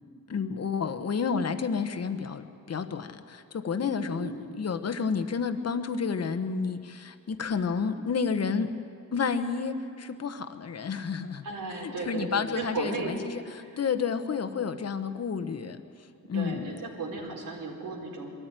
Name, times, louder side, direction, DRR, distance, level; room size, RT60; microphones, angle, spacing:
voice 1, 0.3-8.7 9.1-11.4 11.8-13.4 13.8-15.8 16.3-16.8, left 5 dB, 50° left, 9 dB, 1.2 m, -30 dB
voice 2, 3.9-4.4 11.4-13.2 13.5-13.8 16.3-18.3, right 3 dB, 75° right, -1 dB, 4.2 m, -35 dB
22.0 x 13.5 x 9.1 m, 2.4 s
cardioid pair, 90°, 32 cm